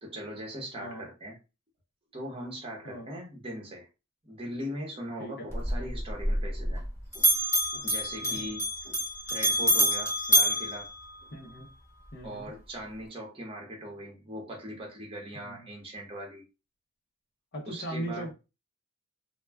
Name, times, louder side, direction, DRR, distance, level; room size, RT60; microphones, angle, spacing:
voice 1, 0.0-1.4 2.1-3.9 4.2-6.8 7.1-7.3 7.7-9.0 9.3-10.9 11.2-11.3 12.2-16.4 17.7-18.3, equal, 25° right, 0.8 m, -40 dB
voice 2, 0.8-1.1 2.8-3.1 5.2-5.5 8.2-8.5 11.3-11.7 12.1-12.5 15.3-15.7 17.5-18.3, right 1 dB, 50° left, 0.6 m, -39 dB
Bell, 5.5-6.9 7.1-11.6, equal, 10° left, 1.0 m, -27 dB
2.2 x 2.1 x 3.3 m
head